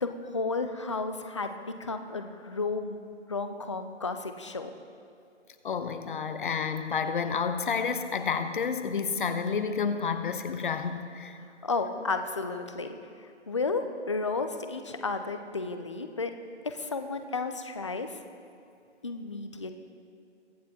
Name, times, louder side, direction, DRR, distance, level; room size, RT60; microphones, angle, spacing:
voice 1, 0.0-3.0 3.3-4.7 11.6-16.3 16.6-18.2 19.0-19.9, left 3 dB, 25° left, 8 dB, 0.4 m, -33 dB
voice 2, 5.6-11.4, left 6 dB, 45° left, 9 dB, 0.8 m, -30 dB
22.5 x 8.1 x 2.9 m, 2.5 s
figure-of-eight pair, 150°, 35 cm